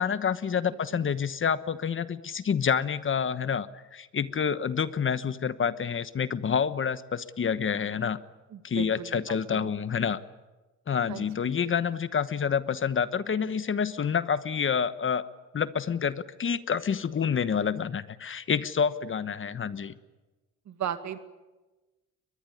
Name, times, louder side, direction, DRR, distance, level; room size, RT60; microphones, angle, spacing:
voice 1, 0.0-3.7 3.9-8.2 8.6-10.2 10.9-15.3 15.5-19.9, left 7 dB, 40° left, 14 dB, 1.2 m, -28 dB
voice 2, 8.5-9.8 11.1-11.5 20.7-21.2, right 10 dB, 65° right, 10 dB, 2.1 m, -37 dB
22.5 x 21.5 x 9.9 m, 1.1 s
cardioid pair, 90°, 30 cm